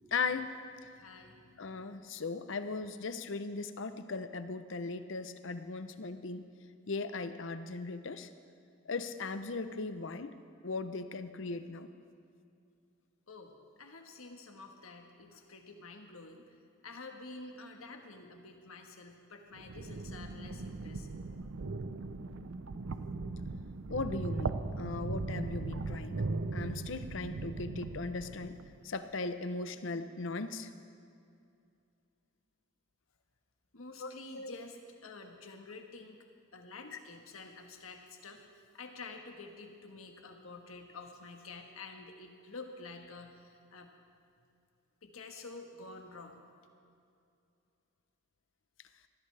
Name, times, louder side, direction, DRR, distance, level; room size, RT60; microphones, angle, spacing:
voice 1, 0.1-0.5 1.6-6.5 6.9-8.3 8.9-10.3 10.6-11.9 23.9-28.6 28.8-30.7 34.0-34.5 36.9-37.0, left 4 dB, 60° left, 10 dB, 0.7 m, -38 dB
voice 2, 0.9-1.6 13.3-16.4 16.8-21.2 33.7-36.2 36.5-43.9 45.0-46.4, left 3 dB, 80° left, 4 dB, 1.4 m, -49 dB
sound 1, 19.5-28.8, right 3 dB, 65° right, 0.6 m, -38 dB
20.5 x 14.5 x 3.3 m, 2.5 s
head